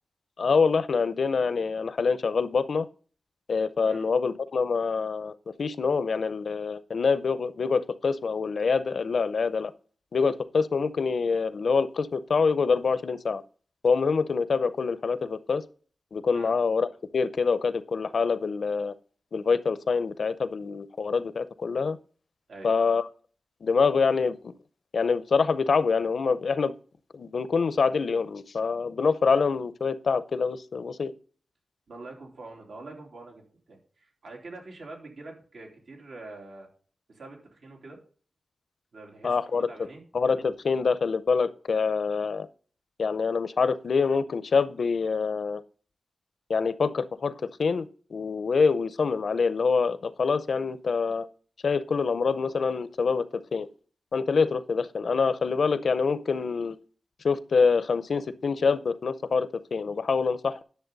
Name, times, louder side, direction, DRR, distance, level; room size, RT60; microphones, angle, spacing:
voice 1, 0.4-2.9 3.5-9.7 10.1-13.4 13.8-15.6 16.1-18.9 19.3-22.0 22.6-23.1 23.6-24.5 24.9-26.7 27.1-31.1 39.2-39.7 40.1-42.5 43.0-45.6 46.5-47.3 47.6-51.3 51.6-53.7 54.1-56.8 57.2-60.6, left 5 dB, 70° left, 14 dB, 0.6 m, -25 dB
voice 2, 31.9-36.7 37.1-38.0 38.9-40.0, right 2 dB, 85° right, 0 dB, 3.2 m, -45 dB
10.5 x 7.0 x 4.0 m, 0.41 s
wide cardioid pair, 120°, 0 cm